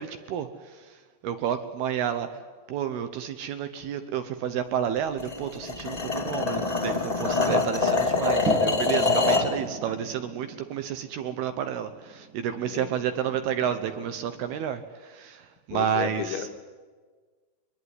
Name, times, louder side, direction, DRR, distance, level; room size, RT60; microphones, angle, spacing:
voice 1, 0.0-2.4 2.7-16.5, right 9 dB, 75° right, 9 dB, 2.5 m, -31 dB
sound 1, 5.2-9.5, left 3 dB, 30° left, 0.7 m, -25 dB
sound 2, 8.4-14.7, right 4 dB, 45° right, 1.7 m, -40 dB
voice 2, 9.3-9.8 12.5-12.9 15.7-16.6, left 9 dB, 80° left, 6 dB, 3.7 m, -35 dB
23.0 x 21.5 x 9.7 m, 1.5 s
omnidirectional pair, 5.4 m